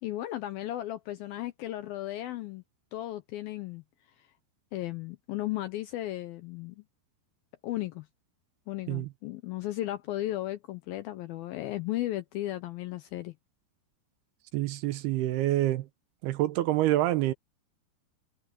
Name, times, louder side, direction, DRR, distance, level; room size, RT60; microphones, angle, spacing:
voice 1, 0.0-2.6 2.9-3.8 4.7-6.8 7.6-8.1 8.7-13.3, left 15 dB, 75° left, 2.2 m, -35 dB
voice 2, 14.5-15.9 16.2-17.3, right 15 dB, 75° right, 2.6 m, -27 dB
omnidirectional pair, 5.1 m